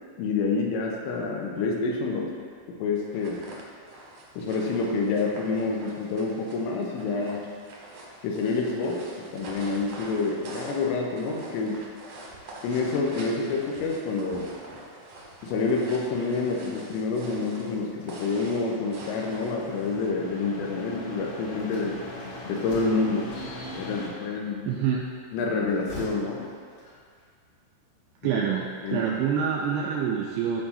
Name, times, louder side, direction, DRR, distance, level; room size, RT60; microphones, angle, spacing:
voice 1, 0.2-2.3 2.7-3.4 4.4-7.4 8.2-9.0 9.3-11.8 12.6-14.5 15.4-22.0 22.5-23.3 23.7-24.7 25.3-26.5 28.2-28.4 28.8-29.0, left 4 dB, 85° left, -1 dB, 3.1 m, -28 dB
sound 1, 3.0-20.1, right 1 dB, 65° right, 1.9 m, -45 dB
sound 2, 17.5-24.1, left 1 dB, 60° left, 2.8 m, -41 dB
sound 3, 21.6-24.2 25.5-27.3, equal, 40° left, 2.1 m, -44 dB
voice 2, 24.7-25.0 28.2-30.6, right 7 dB, 85° right, -2 dB, 2.3 m, -26 dB
14.0 x 4.7 x 2.7 m, 2.1 s
omnidirectional pair, 5.2 m